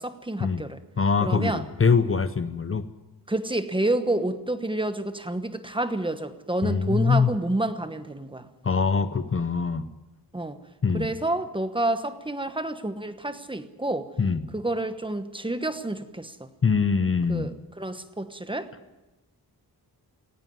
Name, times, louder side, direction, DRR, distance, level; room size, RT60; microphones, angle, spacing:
voice 1, 0.0-0.8 1.2-1.6 3.3-8.5 10.3-10.6 10.9-14.1 14.5-16.5 17.3-17.5 17.8-18.7, right 1 dB, 15° right, 10 dB, 1.1 m, -29 dB
voice 2, 1.0-2.9 6.6-7.3 8.6-9.9 10.8-11.1 14.2-14.5 16.6-17.5, left 5 dB, 35° left, 12 dB, 0.7 m, -23 dB
18.5 x 16.5 x 9.3 m, 1.0 s
wide cardioid pair, 160°, 39 cm